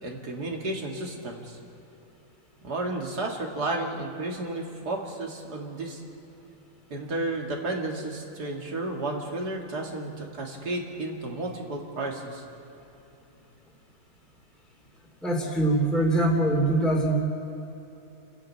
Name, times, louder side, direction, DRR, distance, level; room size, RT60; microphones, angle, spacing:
voice 1, 0.0-1.6 2.6-6.0 6.9-12.4, right 2 dB, 80° right, 0 dB, 2.9 m, -32 dB
voice 2, 15.2-17.2, right 1 dB, ahead, -1 dB, 2.8 m, -23 dB
30.0 x 10.5 x 8.7 m, 3.0 s
omnidirectional pair, 1.7 m